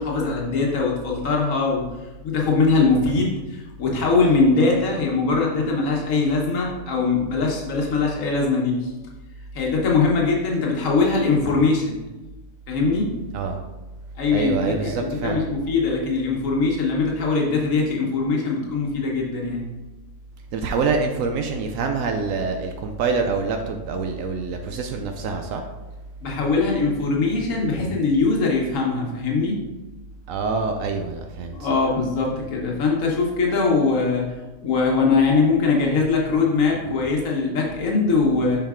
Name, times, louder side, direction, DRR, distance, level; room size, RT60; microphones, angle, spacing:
voice 1, 0.0-1.8 2.2-8.9 9.5-12.0 12.7-13.1 14.2-19.6 26.2-29.6 31.5-34.2 34.6-38.6, left 4 dB, 80° left, -1 dB, 1.5 m, -21 dB
voice 2, 14.3-15.4 20.5-25.7 30.3-31.7, right 4 dB, 85° right, 4 dB, 1.0 m, -25 dB
7.0 x 5.2 x 3.7 m, 1.1 s
omnidirectional pair, 1.3 m